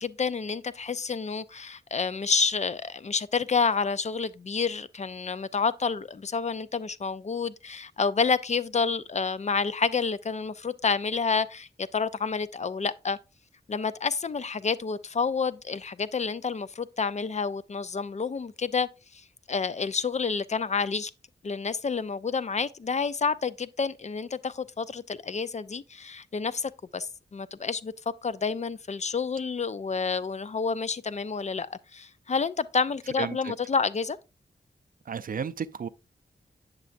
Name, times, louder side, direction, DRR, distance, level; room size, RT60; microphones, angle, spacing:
voice 1, 0.0-13.2 13.7-21.1 21.4-27.9 28.2-34.2, left 5 dB, 40° left, 0.4 m, -29 dB
voice 2, 33.2-33.5 35.1-35.9, right 6 dB, 50° right, 0.4 m, -33 dB
8.2 x 6.7 x 2.5 m
wide cardioid pair, 90°, 18 cm